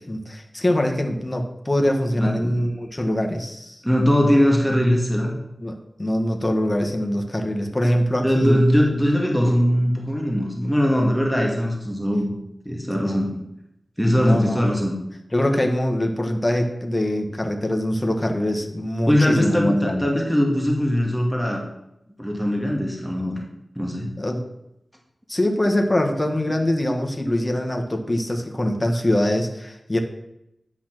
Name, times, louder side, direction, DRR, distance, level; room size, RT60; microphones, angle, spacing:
voice 1, 0.0-3.8 5.6-8.6 12.9-13.2 14.2-14.7 15.3-20.0 24.2-24.4 25.3-30.0, left 1 dB, 25° left, 2 dB, 1.7 m, -23 dB
voice 2, 2.2-2.6 3.8-5.3 8.2-12.3 12.7-13.4 14.0-15.0 19.1-21.6 22.2-23.4 23.8-24.1, equal, 5° left, -1 dB, 2.3 m, -20 dB
10.5 x 5.8 x 6.2 m, 0.83 s
cardioid pair, 50°, 0 cm